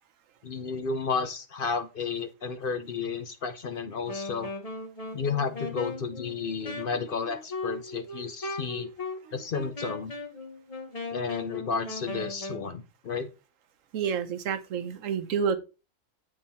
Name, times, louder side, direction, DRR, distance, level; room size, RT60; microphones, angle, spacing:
voice 1, 0.4-4.5 5.1-8.9 9.3-10.1 11.1-13.3, left 5 dB, 55° left, 0.7 m, -32 dB
Wind instrument woodwind instrument, 4.0-12.7, left 3 dB, 30° left, 1.1 m, -38 dB
voice 2, 13.9-15.6, right 7 dB, 80° right, 1.1 m, -29 dB
7.6 x 3.7 x 4.2 m
omnidirectional pair, 1.4 m